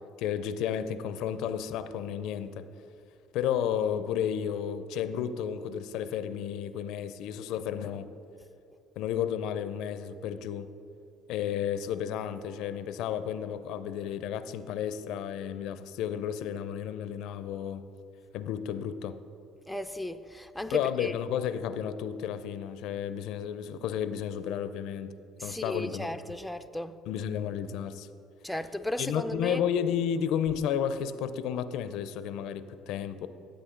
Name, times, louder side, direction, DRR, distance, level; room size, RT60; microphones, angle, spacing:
voice 1, 0.2-2.7 3.3-8.1 9.0-10.7 11.3-17.8 18.3-19.2 20.7-25.1 25.4-26.1 27.1-28.1 29.0-33.3, left 9 dB, 75° left, 0.4 m, -32 dB
voice 2, 19.7-21.1 25.4-27.0 28.4-29.6, left 1 dB, 5° left, 0.4 m, -35 dB
12.5 x 8.3 x 3.7 m
supercardioid pair, 90°, 0 cm